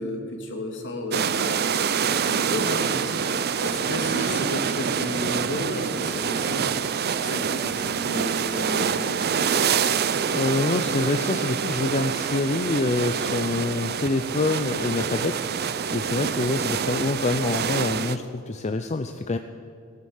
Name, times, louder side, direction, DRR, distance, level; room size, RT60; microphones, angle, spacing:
voice 1, 0.0-1.7 2.0-6.7 7.1-9.9, left 1 dB, 60° left, 3 dB, 2.5 m, -32 dB
sound 1, 1.1-18.2, right 7 dB, 50° right, 0.6 m, -26 dB
voice 2, 10.3-19.4, left 2 dB, 30° left, 8 dB, 0.5 m, -26 dB
17.5 x 11.0 x 7.3 m, 2.3 s
head